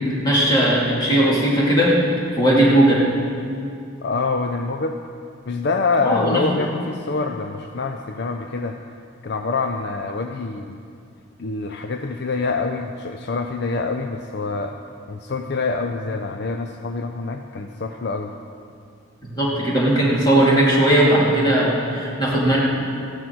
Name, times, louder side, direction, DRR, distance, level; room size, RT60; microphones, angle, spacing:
voice 1, 0.0-2.0 2.3-3.0 6.0-6.6 19.2-22.6, right 1 dB, 20° left, -5 dB, 2.5 m, -18 dB
voice 2, 4.0-5.0 5.5-8.8 9.2-10.8 11.4-14.7 15.1-18.3, left 3 dB, 55° left, 5 dB, 0.5 m, -26 dB
15.0 x 10.5 x 4.6 m, 2.5 s
head